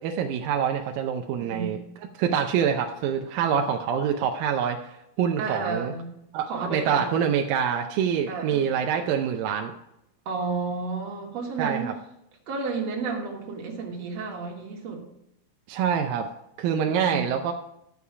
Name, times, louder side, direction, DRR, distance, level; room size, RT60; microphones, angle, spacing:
voice 1, 0.0-1.8 2.2-4.8 5.2-5.9 6.3-9.7 11.6-11.9 15.7-16.3 16.6-17.5, right 8 dB, 80° right, 3 dB, 2.2 m, -25 dB
voice 2, 1.4-1.8 5.4-6.1 6.4-7.2 8.3-8.8 10.3-11.9 12.5-15.0 16.9-17.3, right 4 dB, 50° right, 0 dB, 2.4 m, -32 dB
11.5 x 7.0 x 4.8 m, 0.80 s
omnidirectional pair, 4.4 m